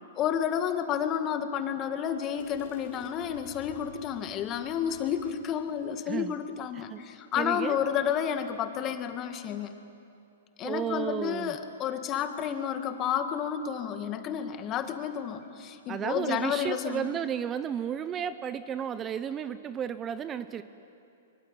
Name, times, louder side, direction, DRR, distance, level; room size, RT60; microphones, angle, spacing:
voice 1, 0.2-9.7 10.6-17.1, left 9 dB, 30° left, 7 dB, 2.1 m, -31 dB
sound 1, 2.4-6.4, left 7 dB, 55° left, 4.1 m, -51 dB
voice 2, 7.4-7.8 10.6-11.6 15.9-20.6, right 8 dB, 25° right, 13 dB, 0.9 m, -33 dB
24.5 x 23.0 x 9.3 m, 2.6 s
hypercardioid pair, 120°, 0 cm